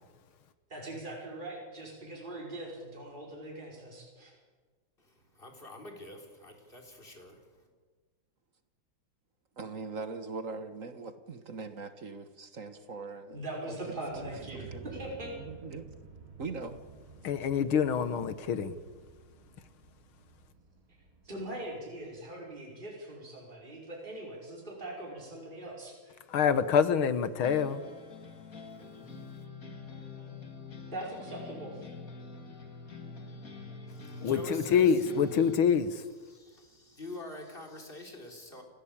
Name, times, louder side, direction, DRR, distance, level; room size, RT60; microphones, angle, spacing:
voice 1, 0.7-4.3 13.3-15.3 21.2-26.2 30.9-31.9, right 1 dB, 25° right, 5.5 m, -41 dB
voice 2, 5.0-7.7 33.9-35.0 36.2-38.6, left 2 dB, 25° left, 4.3 m, -47 dB
voice 3, 9.6-13.4 13.6-14.0 14.5-15.8 16.4-16.8, right 4 dB, 45° right, 1.6 m, -41 dB
sound 1, 14.1-22.5, right 5 dB, 80° right, 4.3 m, -52 dB
voice 4, 17.2-18.7 26.3-27.8 34.2-36.0, left 7 dB, 85° left, 2.1 m, -26 dB
sound 2, 27.4-35.6, left 4 dB, 45° left, 2.8 m, -46 dB
29.5 x 16.0 x 8.8 m
omnidirectional pair, 2.2 m